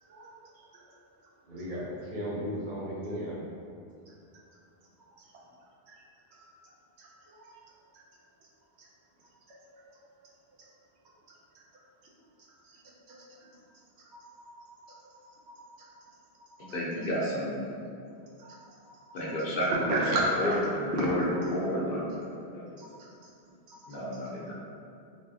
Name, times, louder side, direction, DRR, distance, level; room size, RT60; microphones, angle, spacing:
voice 1, 1.4-3.4, equal, 50° right, -6 dB, 0.8 m, -35 dB
voice 2, 7.0-7.6 7.9-8.0 9.5-9.6 13.1-13.2 14.1-15.0 15.5-15.6 18.4-18.6 18.9-19.0 19.7-20.6 21.0-21.1 22.8-23.1 23.7-23.8, right 1 dB, 80° right, -3 dB, 0.9 m, -33 dB
voice 3, 16.7-17.7 19.1-20.0 20.4-22.8 23.9-24.5, equal, 60° left, -5 dB, 0.8 m, -31 dB
3.4 x 3.1 x 2.6 m, 2.5 s
omnidirectional pair, 1.1 m